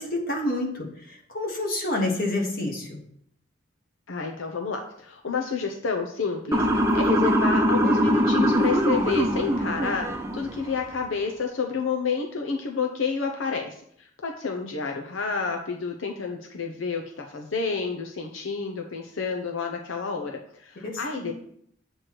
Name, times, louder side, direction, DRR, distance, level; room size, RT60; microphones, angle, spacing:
voice 1, 0.0-3.0 20.8-21.3, left 1 dB, 50° left, -1 dB, 1.7 m, -28 dB
voice 2, 4.1-20.3 20.6-21.3, left 5 dB, 85° left, 2 dB, 0.8 m, -29 dB
Motor vehicle (road) / Siren, 6.5-10.6, equal, 15° right, 0.6 m, -22 dB
8.0 x 3.2 x 5.9 m, 0.66 s
head